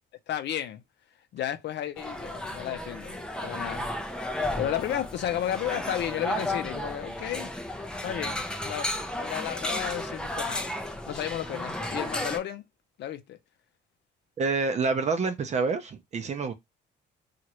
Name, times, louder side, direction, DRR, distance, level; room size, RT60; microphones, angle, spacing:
voice 1, 0.3-0.8 1.3-3.9 4.6-7.5 8.0-8.9 9.2-10.7 11.1-12.6 13.0-13.4, left 11 dB, 70° left, 0.5 m, -33 dB
sound 1, 2.0-12.4, left 1 dB, 5° left, 0.4 m, -33 dB
voice 2, 14.4-16.5, right 4 dB, 40° right, 0.6 m, -27 dB
3.0 x 2.4 x 2.9 m
cardioid pair, 125°, 19 cm